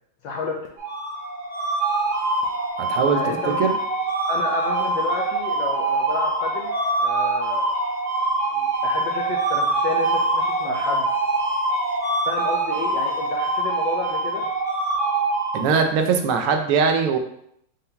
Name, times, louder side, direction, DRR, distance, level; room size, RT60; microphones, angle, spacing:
voice 1, 0.2-0.6 3.1-3.7 4.3-6.7 7.0-7.7 8.5-11.1 12.3-14.5, left 4 dB, 75° left, 0 dB, 1.1 m, -31 dB
sound 1, 0.8-16.0, right 2 dB, 60° right, 1.6 m, -24 dB
voice 2, 2.8-3.7 15.5-17.2, right 5 dB, 85° right, 5 dB, 1.5 m, -21 dB
5.6 x 2.2 x 3.6 m, 0.72 s
omnidirectional pair, 2.4 m